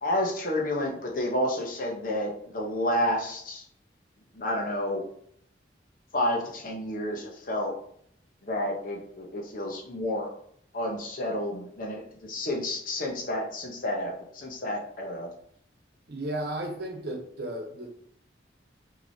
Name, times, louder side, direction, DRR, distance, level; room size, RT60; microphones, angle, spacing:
voice 1, 0.0-3.6 4.3-5.0 6.1-7.7 8.4-10.3 10.7-15.3, left 1 dB, 50° left, 0 dB, 0.9 m, -30 dB
voice 2, 16.1-17.9, right 1 dB, 60° right, 3 dB, 1.0 m, -34 dB
6.0 x 2.9 x 2.8 m, 0.66 s
head